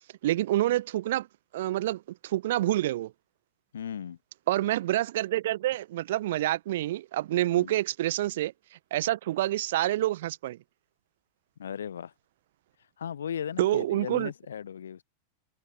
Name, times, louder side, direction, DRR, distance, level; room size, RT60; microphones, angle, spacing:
voice 1, 0.2-1.3 1.5-3.1 4.5-8.5 8.9-10.6 13.6-14.3, right 14 dB, 55° right, 1.3 m, -27 dB
voice 2, 3.7-4.2 7.5-7.7 11.6-12.1 13.0-15.0, left 8 dB, 65° left, 1.2 m, -37 dB
open air
figure-of-eight pair, 90°, 0 cm